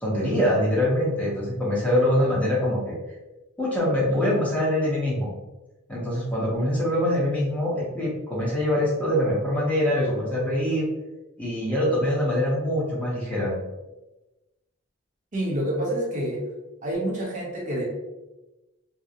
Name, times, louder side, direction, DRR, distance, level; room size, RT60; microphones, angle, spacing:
voice 1, 0.0-2.9 3.6-5.3 5.9-10.8 11.4-13.5, left 1 dB, 5° left, -6 dB, 0.6 m, -24 dB
voice 2, 15.3-16.4 16.8-17.8, right 1 dB, 40° right, -3 dB, 0.7 m, -27 dB
2.8 x 2.0 x 2.4 m, 1.0 s
head